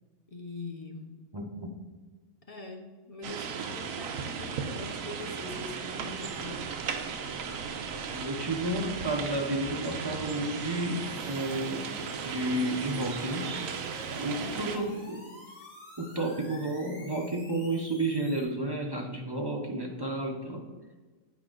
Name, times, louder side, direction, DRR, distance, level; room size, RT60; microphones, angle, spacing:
voice 1, 0.3-1.2 2.5-6.6 14.2-14.7, left 2 dB, 45° left, 2 dB, 0.4 m, -43 dB
voice 2, 1.3-1.7 8.1-11.9 12.2-13.5 14.1-15.2 16.0-20.6, right 1 dB, 35° right, 1 dB, 0.4 m, -32 dB
sound 1, 3.2-14.8, right 6 dB, 75° right, 1.1 m, -36 dB
sound 2, 5.6-18.4, left 1 dB, 65° left, 2.0 m, -49 dB
8.6 x 4.7 x 3.8 m, 1.3 s
omnidirectional pair, 1.5 m